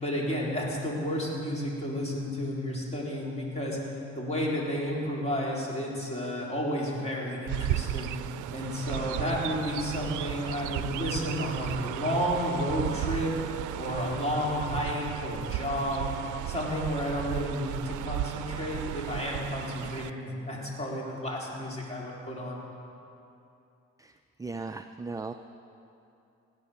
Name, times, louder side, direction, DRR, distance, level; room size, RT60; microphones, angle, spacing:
voice 1, 0.0-3.8 4.2-8.1 8.5-13.4 13.8-16.1 16.5-22.6, equal, 20° left, -4 dB, 3.8 m, -31 dB
Chirp tweet, 7.5-20.1, right 15 dB, 85° right, 0.5 m, -35 dB
voice 2, 24.0-25.3, right 3 dB, 10° right, 8 dB, 0.4 m, -38 dB
17.0 x 9.4 x 6.7 m, 2.7 s
cardioid pair, 90°, 30 cm